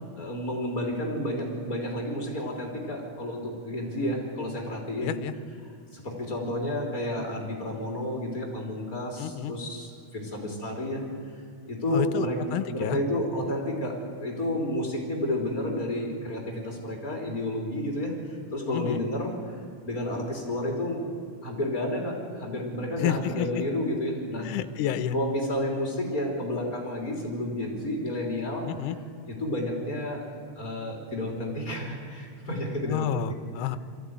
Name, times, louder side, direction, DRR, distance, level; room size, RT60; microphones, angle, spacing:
voice 1, 0.2-5.1 5.9-11.0 11.7-18.1 18.5-19.4 19.8-21.0 21.4-24.5 25.1-28.7 29.3-30.3 30.6-33.2, left 1 dB, 25° left, 1 dB, 3.6 m, -31 dB
voice 2, 5.0-5.3 9.2-9.5 11.9-13.0 18.6-19.0 23.0-23.6 24.4-25.2 28.6-29.0 32.9-33.8, left 10 dB, 75° left, 12 dB, 2.3 m, -30 dB
22.5 x 15.0 x 9.6 m, 2.3 s
omnidirectional pair, 3.7 m